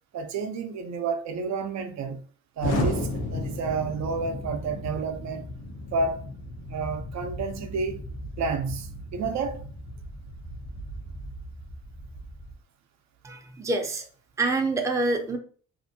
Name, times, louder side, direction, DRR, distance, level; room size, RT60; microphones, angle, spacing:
voice 1, 0.1-2.2 2.6-5.5 5.9-6.2 6.7-8.0 8.4-9.6, right 4 dB, 65° right, 0.5 m, -30 dB
Explosion, 2.6-12.5, left 1 dB, 80° left, 0.9 m, -34 dB
voice 2, 13.2-14.1 14.4-15.4, right 2 dB, 10° right, 0.5 m, -26 dB
2.5 x 2.5 x 2.6 m
cardioid pair, 90°, 30 cm